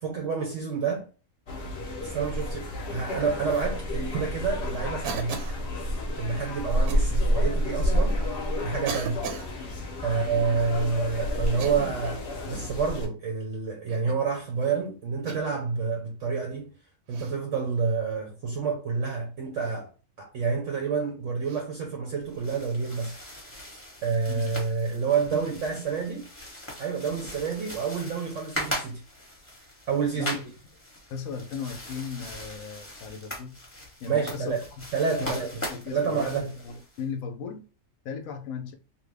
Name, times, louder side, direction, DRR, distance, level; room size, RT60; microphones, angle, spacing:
voice 1, 0.0-1.1 2.0-5.4 6.2-8.2 8.6-9.2 10.0-16.7 17.1-19.9 20.2-23.2 24.0-26.3 26.8-29.0 29.9-30.4 34.1-34.7 34.9-35.6 35.9-36.5, right 5 dB, 65° right, 0.9 m, -28 dB
sound 1, 1.5-13.1, equal, 50° left, 0.8 m, -29 dB
Cough, 5.0-5.6 6.9-7.1 8.0-8.1 8.9-9.5 11.5-12.1 12.5-12.8 13.9-14.2 15.3-15.6 17.1-17.4 19.6-19.8 21.5-21.6, right 7 dB, 85° right, 1.1 m, -37 dB
sound 2, 22.2-37.0, equal, 10° left, 0.9 m, -40 dB
voice 2, 31.1-33.5 34.0-34.9 35.2-37.7 38.0-38.7, left 5 dB, 70° left, 1.0 m, -37 dB
3.0 x 2.2 x 3.3 m
omnidirectional pair, 1.6 m